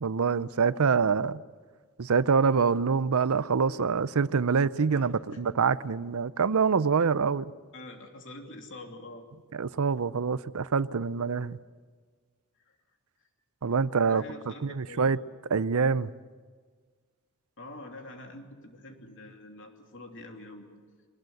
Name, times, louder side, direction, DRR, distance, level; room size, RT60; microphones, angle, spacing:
voice 1, 0.0-1.4 2.0-7.4 9.5-11.6 13.6-14.2 14.6-15.2 15.5-16.1, right 5 dB, 80° right, 0.6 m, -25 dB
voice 2, 4.9-5.4 7.7-9.2 12.7-12.8 14.0-15.1 17.6-20.8, left 2 dB, 60° left, 3.0 m, -45 dB
23.0 x 20.0 x 7.8 m
head